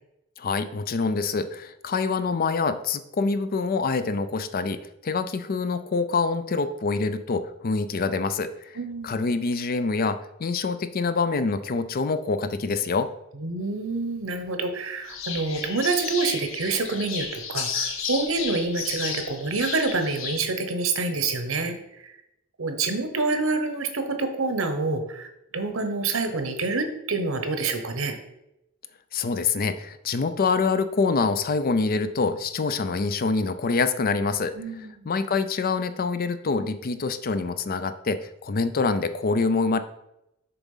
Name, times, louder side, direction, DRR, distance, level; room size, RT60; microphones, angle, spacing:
voice 1, 0.4-8.8 9.0-13.1 29.1-34.5 35.1-39.8, left 4 dB, 45° left, 11 dB, 0.4 m, -25 dB
voice 2, 8.8-9.3 13.4-22.1 22.6-28.1 34.5-35.1, right 3 dB, 75° right, 7 dB, 1.0 m, -27 dB
sound 1, 15.1-20.4, left 6 dB, 70° left, 1.0 m, -33 dB
7.0 x 3.6 x 5.5 m, 0.85 s
head